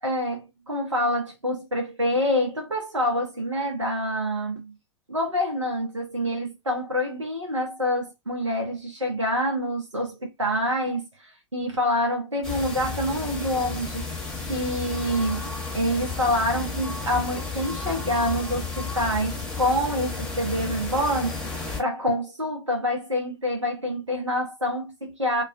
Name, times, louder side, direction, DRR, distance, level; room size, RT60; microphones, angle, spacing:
voice 1, 0.0-4.7 5.1-14.2 14.5-15.5 15.7-25.4, equal, 85° right, 0.8 m, -26 dB
sound 1, 12.4-21.8, left 4 dB, 5° left, 0.9 m, -32 dB
2.3 x 2.3 x 2.3 m
figure-of-eight pair, 95°, 15 cm